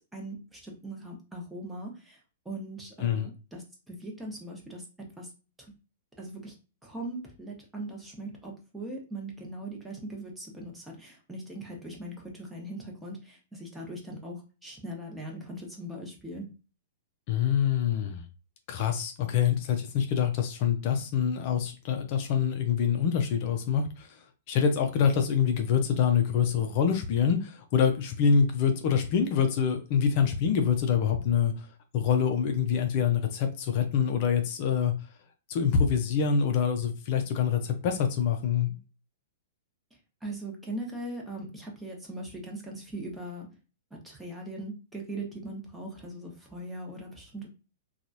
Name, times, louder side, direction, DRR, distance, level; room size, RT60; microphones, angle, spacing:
voice 1, 0.0-2.2 2.4-4.9 5.2-5.3 6.2-6.5 6.8-16.5 40.2-43.5 43.9-47.5, right 1 dB, 10° right, -1 dB, 0.9 m, -40 dB
voice 2, 17.3-18.2 18.7-24.2 24.5-31.7 31.9-34.9 35.5-38.8, left 7 dB, 50° left, 5 dB, 0.5 m, -25 dB
2.9 x 2.3 x 2.6 m, 0.33 s
hypercardioid pair, 115°, 0 cm